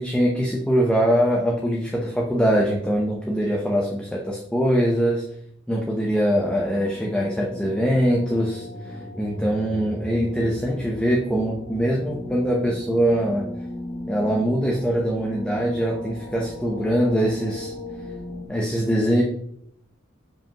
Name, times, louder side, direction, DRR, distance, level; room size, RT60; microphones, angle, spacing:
voice 1, 0.0-5.2 5.7-13.5 14.1-17.7 18.5-19.2, equal, 5° left, -2 dB, 0.8 m, -23 dB
sound 1, 6.4-18.5, left 1 dB, 30° left, 2.1 m, -36 dB
7.3 x 5.2 x 2.9 m, 0.69 s
head